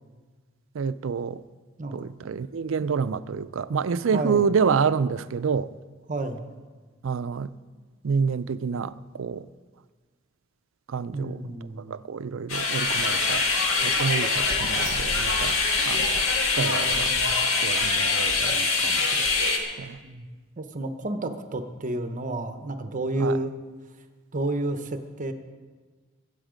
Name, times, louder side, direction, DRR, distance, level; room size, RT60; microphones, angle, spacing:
voice 1, 0.7-1.4 1.9-5.7 7.0-7.5 8.0-9.5 10.9-11.4 11.9-13.5 13.8-15.6 15.8-16.2 16.5-17.2 17.6-19.3 19.8-20.0 23.2-23.4, right 6 dB, 65° right, 15 dB, 0.4 m, -28 dB
voice 2, 4.0-4.4 6.1-6.5 11.1-12.0 16.6-17.3 20.0-20.3 20.6-23.5 24.3-25.3, right 2 dB, 40° right, 8 dB, 0.9 m, -31 dB
sound 1, 12.5-19.6, left 3 dB, 70° left, 1.8 m, -24 dB
22.5 x 8.1 x 5.1 m, 1.4 s
head